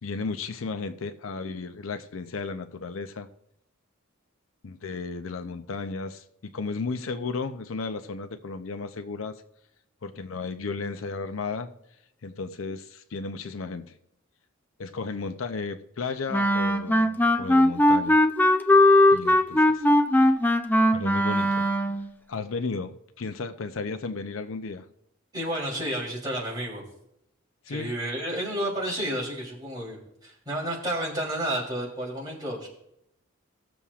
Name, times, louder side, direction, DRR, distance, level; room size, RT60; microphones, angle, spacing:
voice 1, 0.0-3.3 4.6-6.2 6.5-9.4 10.0-11.7 12.2-13.9 14.8-18.2 19.1-19.9 20.9-22.0 22.3-24.9 27.7-27.9, left 4 dB, 75° left, 0.6 m, -34 dB
Wind instrument woodwind instrument, 16.3-22.1, left 1 dB, 10° left, 0.5 m, -20 dB
voice 2, 25.3-26.8 27.7-32.7, right 1 dB, 20° right, 3.2 m, -31 dB
18.0 x 7.0 x 2.4 m
head